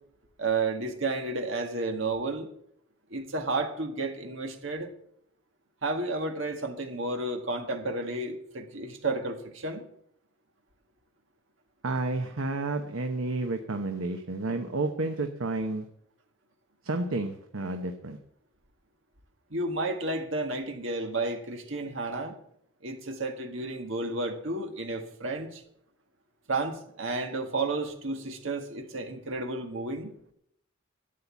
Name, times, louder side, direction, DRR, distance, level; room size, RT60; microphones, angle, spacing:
voice 1, 0.4-2.5 3.1-4.9 5.8-9.8 19.5-22.3 22.8-25.6 26.5-30.2, right 2 dB, 65° right, 4 dB, 1.8 m, -32 dB
voice 2, 11.8-15.9 16.8-18.2, right 2 dB, 80° right, 5 dB, 1.0 m, -31 dB
12.5 x 8.5 x 7.2 m, 0.71 s
head